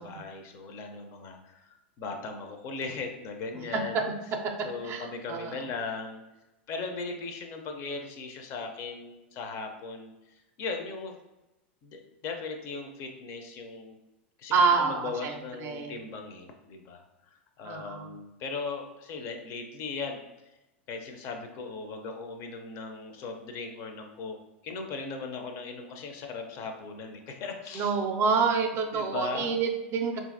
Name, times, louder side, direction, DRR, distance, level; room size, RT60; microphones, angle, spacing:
voice 1, 0.0-4.0 4.6-6.2 6.7-10.1 10.6-11.1 11.8-14.0 14.4-17.0 17.6-20.2 20.9-24.4 24.6-27.9 28.9-29.5, left 4 dB, 45° left, 4 dB, 0.5 m, -38 dB
voice 2, 4.8-5.5 14.5-15.9 17.6-18.1 27.7-30.2, right 5 dB, 35° right, 4 dB, 0.4 m, -27 dB
2.7 x 2.5 x 2.5 m, 0.97 s
hypercardioid pair, 100°, 7 cm